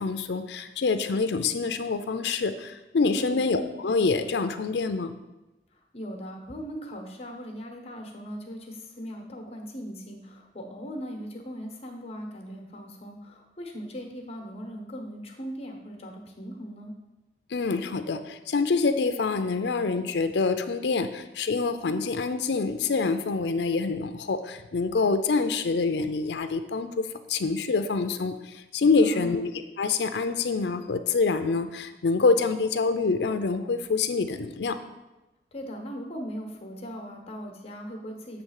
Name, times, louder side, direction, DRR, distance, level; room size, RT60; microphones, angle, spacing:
voice 1, 0.0-5.2 17.5-29.5 29.8-34.8, left 4 dB, 75° left, 9 dB, 0.5 m, -26 dB
voice 2, 3.1-3.4 5.7-16.9 29.0-29.4 35.5-38.4, equal, 35° left, 3 dB, 1.1 m, -39 dB
7.9 x 3.2 x 6.4 m, 1.0 s
head